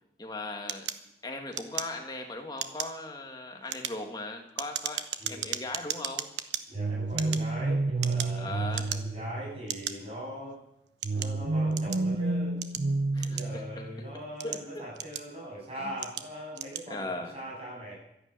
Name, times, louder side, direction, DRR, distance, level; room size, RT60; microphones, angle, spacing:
voice 1, 0.2-0.9 1.2-6.3 8.4-8.9 13.1-13.9 14.4-14.9 15.8-15.9 16.9-17.3, left 2 dB, 20° left, 3 dB, 1.8 m, -38 dB
sound 1, 0.7-2.2 2.5-3.0 3.5-6.6 7.1-8.4 8.7-9.2 9.7-9.9 10.6-12.1 12.6-13.8 14.2-15.5 16.0-16.3 16.5-16.9, right 10 dB, 90° right, 1.0 m, -36 dB
voice 2, 5.2-5.6 6.7-10.6 11.1-12.6 13.3-18.0, right 1 dB, 35° right, -4 dB, 7.8 m, -41 dB
sound 2, 6.8-9.9 11.0-14.0, right 2 dB, 65° right, 0.6 m, -30 dB
12.5 x 11.0 x 9.0 m, 0.80 s
head